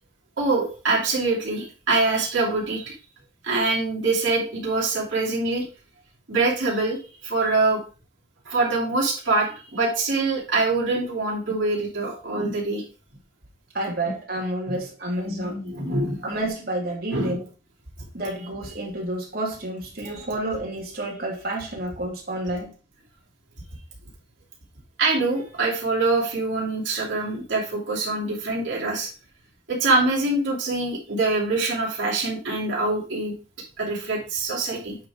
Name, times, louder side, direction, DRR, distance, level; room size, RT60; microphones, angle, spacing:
voice 1, 0.4-2.9 3.4-5.6 6.3-7.8 8.5-12.8 14.7-14.8 15.2-16.3 17.1-17.4 25.0-29.1 29.7-33.3 33.8-35.0, right 3 dB, 75° right, 2.7 m, -24 dB
voice 2, 13.7-15.6 16.2-17.4 18.1-22.7, right 1 dB, 50° right, 2.3 m, -30 dB
8.6 x 3.5 x 4.9 m
head